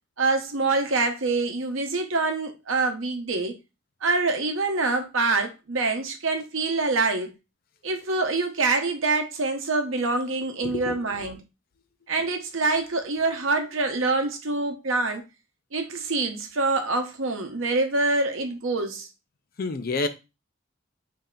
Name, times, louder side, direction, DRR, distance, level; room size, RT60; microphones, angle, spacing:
voice 1, 0.2-3.5 4.0-7.3 7.8-11.4 12.1-15.2 15.7-19.1, right 3 dB, 80° right, 0.8 m, -25 dB
voice 2, 10.6-11.2 19.6-20.1, left 3 dB, 45° left, 0.4 m, -29 dB
3.2 x 2.8 x 3.7 m
head